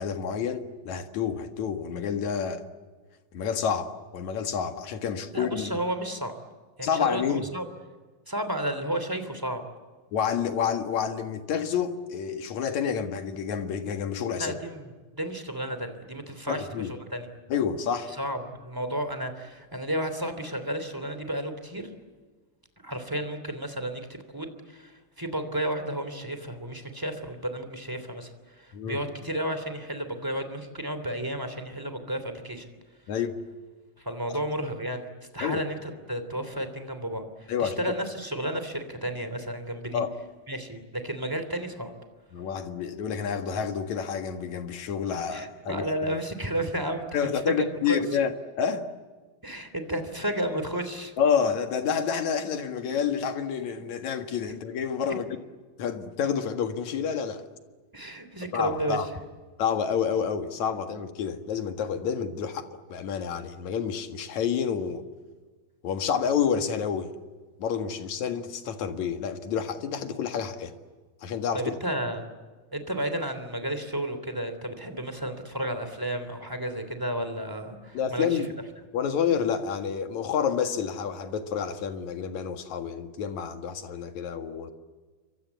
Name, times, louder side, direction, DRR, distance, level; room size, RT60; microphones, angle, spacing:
voice 1, 0.0-2.6 3.3-5.7 6.8-7.5 10.1-14.6 16.5-16.9 17.5-18.1 28.7-29.0 33.1-33.4 35.4-35.6 37.5-37.8 39.9-40.1 42.3-45.8 47.1-48.9 51.2-55.2 55.8-57.4 58.5-59.1 59.6-65.0 65.8-67.1 67.6-70.7 71.2-71.8 77.9-78.5 78.9-84.7, left 7 dB, 55° left, 2.6 m, -29 dB
voice 2, 5.3-6.4 6.8-7.6 8.3-9.6 14.4-17.3 18.2-21.9 22.8-32.7 34.0-35.1 35.3-40.0 40.5-41.9 45.3-47.3 47.6-48.0 49.4-51.1 57.9-59.0 71.5-72.3 72.7-78.4, right 1 dB, 5° right, 2.2 m, -32 dB
29.0 x 25.0 x 8.3 m
omnidirectional pair, 4.8 m